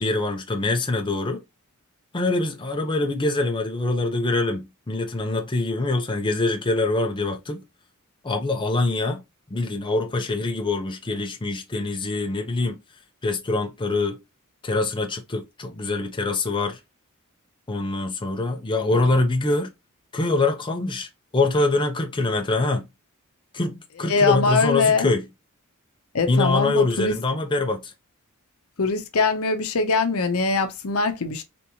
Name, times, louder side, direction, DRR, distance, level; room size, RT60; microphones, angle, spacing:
voice 1, 0.0-1.4 2.1-7.6 8.2-9.2 9.5-12.8 13.2-14.2 14.6-16.8 17.7-19.7 20.1-22.8 23.5-25.2 26.3-27.9, left 2 dB, 20° left, 0.5 m, -24 dB
voice 2, 24.0-25.1 26.1-27.1 28.8-31.4, left 4 dB, 70° left, 0.7 m, -22 dB
3.4 x 2.9 x 2.7 m
head